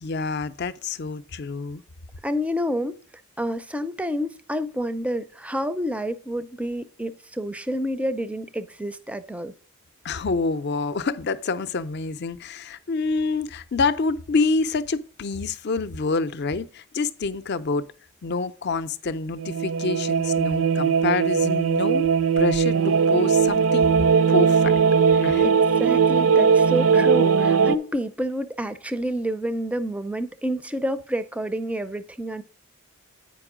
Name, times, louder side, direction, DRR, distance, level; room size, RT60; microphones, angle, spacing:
voice 1, 0.0-1.8 10.0-17.8 18.2-22.1 22.4-23.9 24.3-24.7 25.2-25.5, left 4 dB, 50° left, 0.5 m, -27 dB
voice 2, 2.2-3.0 3.4-9.6 25.4-32.4, equal, 5° right, 0.4 m, -28 dB
sound 1, 19.4-27.8, right 6 dB, 70° right, 0.6 m, -19 dB
9.0 x 5.3 x 4.9 m
head